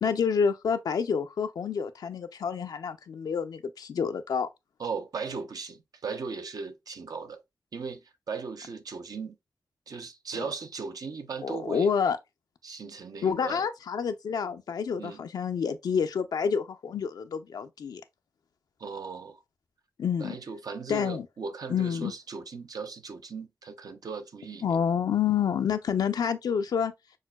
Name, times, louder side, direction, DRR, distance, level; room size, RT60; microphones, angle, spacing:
voice 1, 0.0-4.5 10.4-10.5 11.4-12.2 13.2-18.0 20.0-20.4 20.9-21.3 21.7-22.1 24.6-26.9, left 7 dB, 90° left, 0.4 m, -28 dB
voice 2, 4.8-7.4 7.7-9.4 9.9-11.9 12.6-13.7 15.0-15.3 18.8-19.4 20.2-24.6, right 5 dB, 75° right, 0.5 m, -37 dB
6.3 x 2.1 x 2.2 m
cardioid pair, 40°, 7 cm